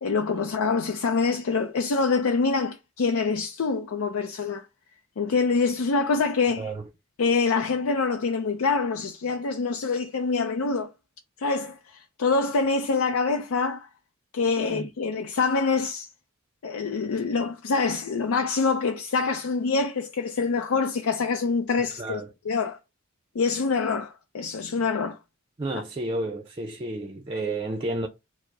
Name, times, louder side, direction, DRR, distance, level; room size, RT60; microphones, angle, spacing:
voice 1, 0.0-4.6 5.2-6.7 7.2-10.9 11.4-13.9 14.3-16.1 16.6-22.8 23.3-25.2, left 4 dB, 85° left, 0.5 m, -25 dB
voice 2, 22.0-22.3 25.6-28.1, right 2 dB, 25° right, 0.5 m, -31 dB
4.7 x 2.0 x 4.6 m
head